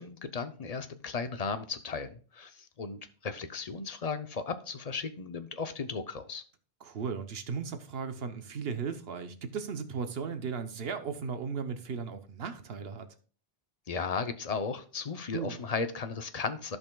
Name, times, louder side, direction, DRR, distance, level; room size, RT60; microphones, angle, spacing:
voice 1, 0.0-6.4 13.9-16.8, left 5 dB, 40° left, 0.7 m, -35 dB
voice 2, 6.8-13.1 15.3-15.6, right 6 dB, 70° right, 1.0 m, -36 dB
15.0 x 5.3 x 2.3 m
omnidirectional pair, 1.1 m